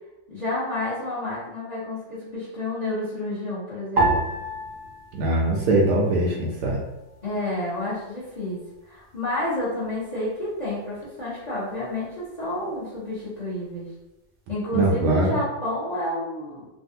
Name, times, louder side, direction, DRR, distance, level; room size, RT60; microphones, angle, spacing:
voice 1, 0.3-4.1 7.2-13.9 14.5-16.7, left 1 dB, 35° left, -9 dB, 0.7 m, -30 dB
sound 1, 4.0-6.5 6.7-7.7 8.3-8.7, right 2 dB, 55° right, 0.7 m, -29 dB
voice 2, 5.1-6.8 14.7-15.3, right 2 dB, 70° right, -2 dB, 1.1 m, -22 dB
3.4 x 2.3 x 2.7 m, 0.96 s
omnidirectional pair, 2.1 m